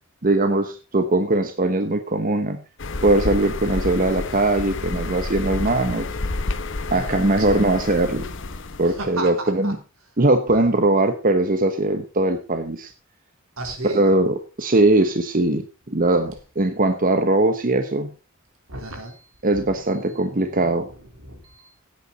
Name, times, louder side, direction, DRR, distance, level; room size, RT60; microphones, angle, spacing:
voice 1, 0.2-2.6 3.0-6.1 6.9-8.3 8.8-9.8 10.2-12.9 13.8-18.1 19.4-20.9, right 2 dB, 40° right, 7 dB, 1.0 m, -20 dB
sound 1, 2.8-9.1, left 3 dB, 60° left, 1.1 m, -29 dB
voice 2, 7.0-7.6 8.8-9.7 13.6-14.1 18.7-19.3 19.5-19.7 21.2-21.7, right 2 dB, 75° right, 3 dB, 4.0 m, -34 dB
16.5 x 8.7 x 4.0 m, 0.32 s
head